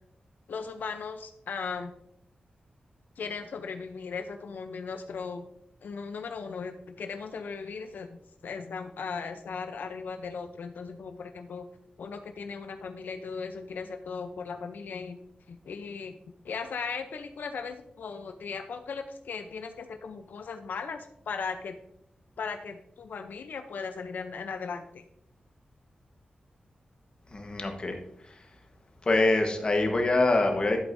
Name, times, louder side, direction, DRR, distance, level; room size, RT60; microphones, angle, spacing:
voice 1, 0.5-1.9 3.2-5.5 5.8-11.7 12.0-15.2 15.5-16.2 16.4-21.8 22.4-25.0, left 5 dB, 90° left, 7 dB, 0.6 m, -37 dB
voice 2, 27.3-28.5 29.0-30.8, left 2 dB, 30° left, 3 dB, 1.2 m, -25 dB
11.0 x 8.2 x 2.6 m, 0.73 s
wide cardioid pair, 170°, 3 cm